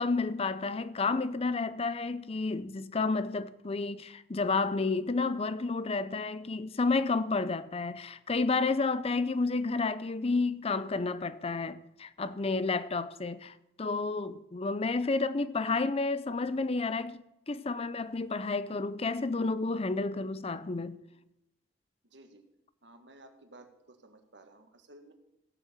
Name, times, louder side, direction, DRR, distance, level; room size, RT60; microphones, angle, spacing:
voice 1, 0.0-21.0, left 3 dB, 35° left, 0.6 m, -31 dB
voice 2, 22.1-22.5 22.8-25.1, right 2 dB, 85° right, 1.8 m, -55 dB
15.5 x 7.0 x 7.4 m
head